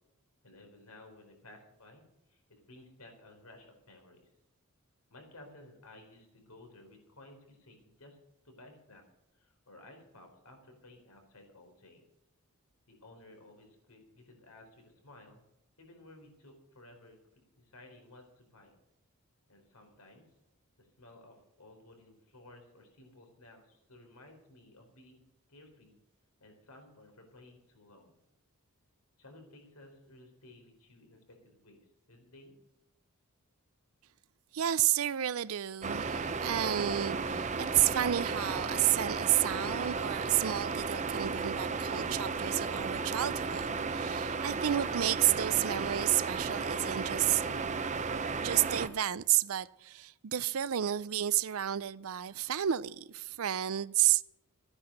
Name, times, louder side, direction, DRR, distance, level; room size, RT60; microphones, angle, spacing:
voice 1, 0.4-4.3 5.1-8.2 8.4-9.0 9.4-12.1 12.9-15.4 15.8-17.2 17.6-18.8 19.5-20.3 20.8-25.2 25.5-26.0 26.4-28.1 29.2-31.8 32.1-32.6, left 2 dB, 85° left, 4.2 m, -56 dB
voice 2, 34.5-47.9 48.4-54.2, right 12 dB, 70° right, 0.5 m, -31 dB
sound 1, 35.8-48.9, right 4 dB, 30° right, 0.8 m, -34 dB
14.5 x 9.7 x 6.5 m
head